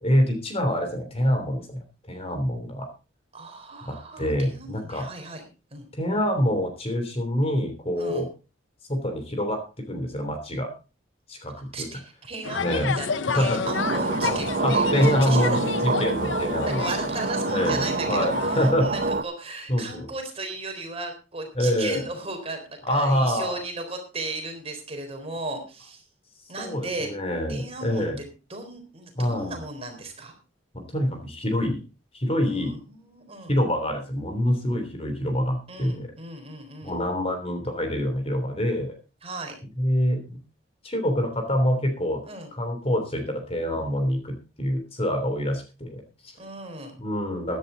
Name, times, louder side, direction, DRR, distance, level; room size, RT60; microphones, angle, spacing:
voice 1, 0.0-2.9 3.8-5.1 5.9-8.3 8.9-9.6 9.9-10.7 11.3-11.9 12.6-13.0 13.3-13.6 14.3-16.9 17.5-17.8 18.1-19.1 19.7-20.1 21.5-22.0 22.8-23.6 26.6-28.2 29.2-29.5 30.7-31.8 32.1-32.8 33.5-36.1 36.8-38.9 39.8-40.4 40.8-42.2 42.5-46.4 47.0-47.6, equal, 30° left, 6 dB, 3.2 m, -26 dB
voice 2, 3.3-5.4 5.7-5.9 8.0-8.2 11.7-15.5 16.6-26.0 26.5-27.1 27.5-30.3 32.4-33.5 35.7-37.0 39.2-39.6 42.2-42.5 46.4-47.0, right 2 dB, 30° right, 4 dB, 3.9 m, -36 dB
sound 1, 12.4-18.7, left 5 dB, 75° left, 0.8 m, -31 dB
sound 2, 13.6-19.2, right 3 dB, 50° right, 0.8 m, -27 dB
15.5 x 11.0 x 3.9 m, 0.31 s
head